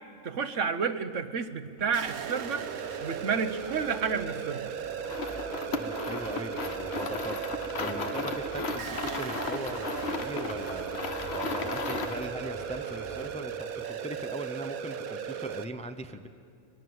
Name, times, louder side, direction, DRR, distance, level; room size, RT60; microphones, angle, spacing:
voice 1, 0.2-2.7 3.0-4.7, right 6 dB, 65° right, 11 dB, 1.3 m, -30 dB
sound 1, 1.8-13.3, right 3 dB, 35° left, 2.1 m, -46 dB
sound 2, 1.9-15.6, right 7 dB, 90° right, 1.4 m, -37 dB
sound 3, 5.0-12.3, left 4 dB, 50° left, 1.3 m, -35 dB
voice 2, 5.7-16.3, right 1 dB, 5° left, 7 dB, 0.6 m, -40 dB
23.5 x 20.5 x 7.9 m, 2.5 s
omnidirectional pair, 1.4 m